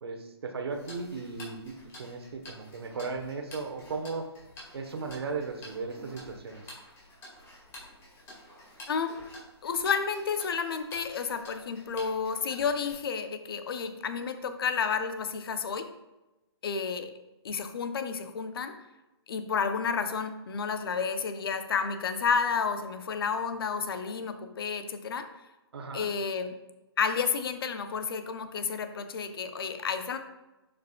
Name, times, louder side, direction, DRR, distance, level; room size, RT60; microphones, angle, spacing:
voice 1, 0.0-4.2 4.7-6.6 25.7-26.1, right 4 dB, 65° right, 5 dB, 1.2 m, -36 dB
Tick-tock, 0.7-12.9, left 1 dB, 20° left, 2.1 m, -50 dB
voice 2, 8.9-9.2 9.6-15.9 16.6-17.1 17.4-18.7 19.3-25.3 25.9-26.6 27.0-30.2, left 6 dB, 60° left, 8 dB, 0.8 m, -31 dB
11.0 x 5.2 x 2.3 m, 1.0 s
figure-of-eight pair, 130°, 14 cm